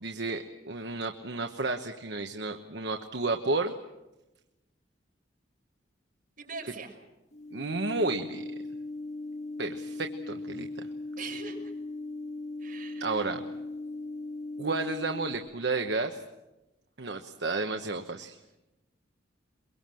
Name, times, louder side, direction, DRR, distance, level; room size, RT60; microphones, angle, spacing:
voice 1, 0.0-3.7 7.5-8.5 9.6-10.9 13.0-13.4 14.6-16.2 17.0-18.4, right 3 dB, 70° right, 5 dB, 1.1 m, -32 dB
voice 2, 6.4-6.9 11.2-11.6 12.6-13.2, right 5 dB, 50° right, 0 dB, 6.0 m, -41 dB
sound 1, 7.3-15.4, left 2 dB, 40° left, 1.8 m, -38 dB
23.0 x 23.0 x 7.7 m, 1.0 s
head